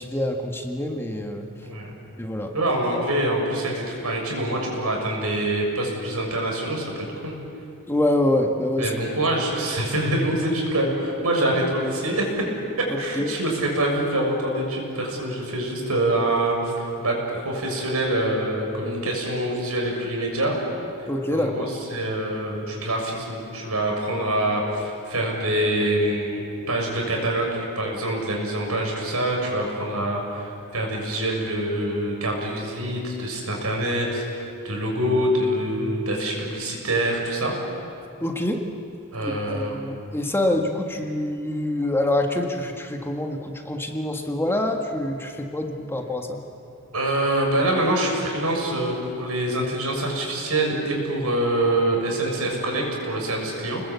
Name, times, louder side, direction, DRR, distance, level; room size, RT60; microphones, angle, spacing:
voice 1, 0.0-1.5 2.2-2.5 7.9-9.0 13.1-13.3 21.1-21.7 38.2-38.6 39.2-46.4, left 1 dB, 10° left, 2 dB, 1.7 m, -26 dB
voice 2, 2.5-7.3 8.8-12.2 13.0-20.6 21.3-21.6 21.9-37.5 39.1-39.8 46.9-53.8, right 1 dB, 80° right, 0 dB, 6.5 m, -25 dB
30.0 x 20.5 x 8.4 m, 2.6 s
head